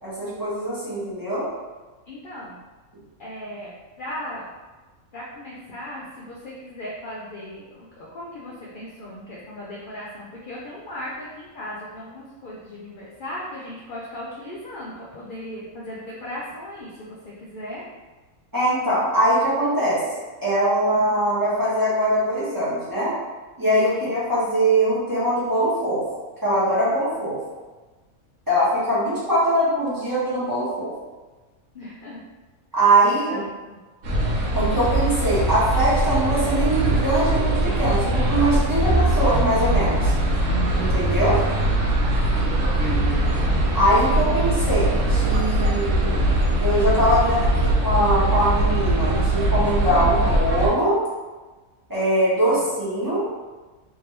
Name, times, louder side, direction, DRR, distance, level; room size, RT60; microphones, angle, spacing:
voice 1, 0.0-1.5 18.5-20.0 20.4-23.1 23.6-26.0 26.4-27.4 28.5-30.9 32.7-33.4 34.5-40.1 40.7-41.4 43.7-46.1 46.6-51.0 51.9-53.3, right 1 dB, 15° right, -11 dB, 1.2 m, -22 dB
voice 2, 2.1-2.6 3.2-3.7 4.0-4.5 5.1-17.8 20.9-21.1 23.9-24.1 27.2-27.3 31.7-32.2 33.0-33.8 38.8-39.3 41.5-41.7 42.3-42.9 44.1-44.4 52.5-52.6, left 1 dB, 55° left, -6 dB, 0.6 m, -37 dB
sound 1, 34.0-50.7, right 1 dB, 90° right, 1.3 m, -21 dB
3.4 x 2.9 x 3.2 m, 1.3 s
omnidirectional pair, 1.5 m